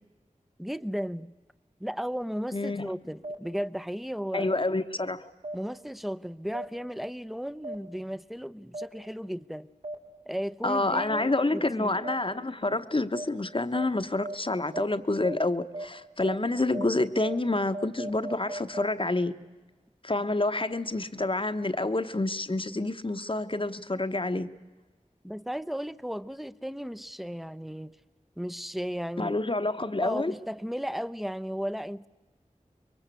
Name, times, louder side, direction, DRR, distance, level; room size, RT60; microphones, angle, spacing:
voice 1, 0.6-1.3 1.8-4.5 5.5-9.7 10.3-11.9 25.2-28.0 28.4-29.3 30.0-32.1, equal, ahead, 0.7 m, -35 dB
voice 2, 2.5-2.9 4.3-5.3 10.6-19.3 20.0-24.5 29.2-30.3, left 2 dB, 40° left, 1.1 m, -28 dB
sound 1, 3.2-3.3 4.3-4.4 5.4-5.5 6.5-6.6 7.6-7.7 8.7-8.8 9.8-9.9 10.9-11.0 12.0-12.1 13.1-13.2 13.7-13.8 14.2-14.3 14.7-14.8 15.2-15.3 15.7-15.8 16.2-16.3 16.7-16.8 17.2-17.3 17.7-18.8, right 1 dB, 85° right, 5.2 m, -35 dB
25.5 x 22.5 x 8.3 m
wide cardioid pair, 50°, 13 cm